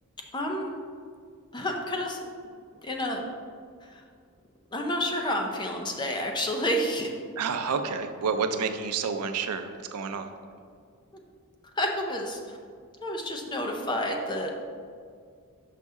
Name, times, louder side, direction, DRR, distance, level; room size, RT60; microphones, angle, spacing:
voice 1, 0.3-0.8 1.5-2.5 2.8-3.3 3.8-4.0 4.7-7.1 11.8-12.6 13.0-14.5, left 1 dB, 20° left, 2 dB, 0.5 m, -30 dB
voice 2, 7.4-10.3, right 5 dB, 85° right, 8 dB, 0.5 m, -29 dB
5.8 x 5.3 x 3.6 m, 2.1 s
head